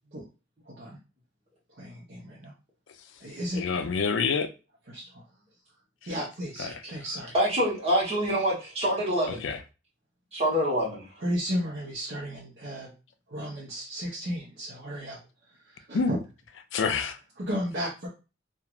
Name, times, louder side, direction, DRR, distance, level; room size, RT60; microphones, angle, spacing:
voice 1, 0.7-1.0 1.8-2.5 3.2-3.6 4.9-5.2 6.0-7.4 11.2-12.9 13.3-15.2 15.7-16.2 17.4-18.1, equal, 55° right, 0.8 m, -34 dB
voice 2, 3.6-4.5 6.6-6.8 9.3-9.6 15.9-16.1 16.7-17.2, left 5 dB, 70° left, 0.4 m, -27 dB
voice 3, 7.3-9.4 10.3-11.0, equal, 30° right, 1.1 m, -25 dB
2.9 x 2.5 x 2.4 m
head